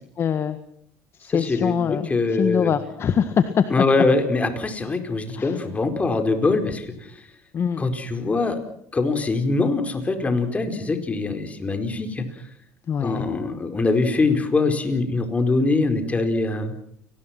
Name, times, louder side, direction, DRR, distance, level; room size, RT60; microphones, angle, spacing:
voice 1, 0.2-0.6 1.2-3.6 5.3-5.6 7.5-7.8 12.9-13.3, left 7 dB, 40° left, 10 dB, 1.6 m, -23 dB
voice 2, 1.3-2.7 3.7-6.9 7.8-8.6 8.9-12.2 13.0-16.8, left 3 dB, 20° left, 7 dB, 4.6 m, -23 dB
29.0 x 19.5 x 6.0 m, 0.67 s
supercardioid pair, 95°, 7 cm